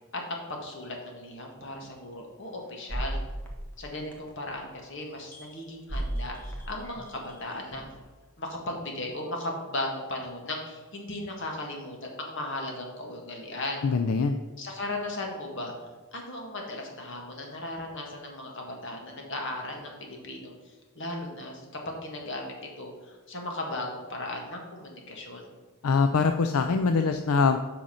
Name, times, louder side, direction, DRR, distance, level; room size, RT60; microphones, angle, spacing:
voice 1, 0.1-3.2 3.8-7.8 8.4-13.8 14.6-15.7 16.1-25.5, left 2 dB, 55° left, 1 dB, 1.8 m, -36 dB
sound 1, 1.7-1.9 2.9-4.5 5.3-5.6 5.9-8.1, right 1 dB, 10° left, 1.2 m, -35 dB
voice 2, 13.8-14.4 25.8-27.6, left 4 dB, 80° left, 8 dB, 0.5 m, -23 dB
7.7 x 5.7 x 5.6 m, 1.3 s
head